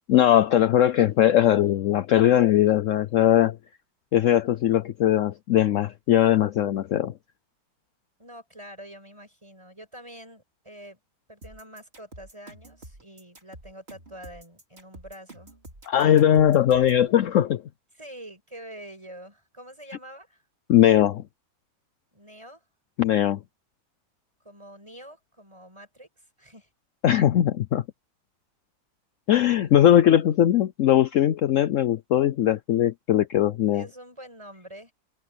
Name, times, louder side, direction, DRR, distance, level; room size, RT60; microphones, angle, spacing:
voice 1, 0.1-3.6 4.1-7.1 15.9-17.6 20.7-21.2 23.0-23.4 27.0-27.8 29.3-33.8, left 11 dB, 70° left, 0.7 m, -20 dB
voice 2, 8.2-11.0 11.3-15.5 17.9-20.4 22.1-22.6 24.4-26.1 26.4-26.7 33.7-34.9, right 1 dB, 15° right, 6.0 m, -45 dB
sound 1, 11.4-17.1, right 1 dB, 30° right, 4.3 m, -47 dB
omnidirectional pair, 2.0 m